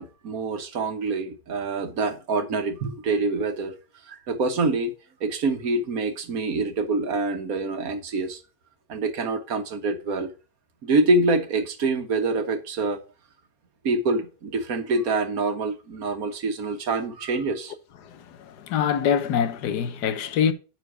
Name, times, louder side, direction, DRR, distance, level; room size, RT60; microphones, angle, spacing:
voice 1, 0.0-3.8 4.0-4.9 5.2-8.4 8.9-10.3 10.8-13.0 13.8-17.7, right 3 dB, 65° right, 1.6 m, -26 dB
voice 2, 18.0-20.5, left 8 dB, 85° left, 1.4 m, -25 dB
9.5 x 4.5 x 4.9 m
omnidirectional pair, 1.7 m